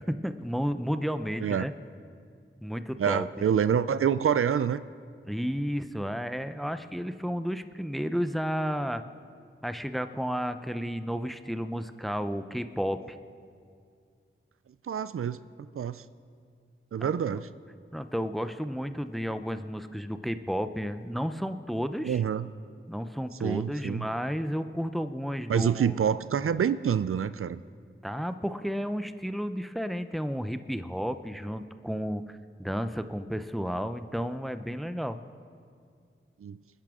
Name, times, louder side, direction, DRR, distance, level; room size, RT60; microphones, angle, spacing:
voice 1, 0.1-1.7 2.6-3.3 5.3-9.0 9.6-13.2 17.0-17.1 17.9-22.2 22.9-26.0 28.0-35.2, equal, ahead, 10 dB, 0.6 m, -32 dB
voice 2, 3.0-4.8 14.8-16.0 16.9-17.5 22.0-22.5 23.4-24.1 25.5-27.6 36.4-36.6, right 8 dB, 90° right, 14 dB, 0.4 m, -27 dB
27.5 x 10.0 x 3.7 m, 2.2 s
wide cardioid pair, 70°, 21 cm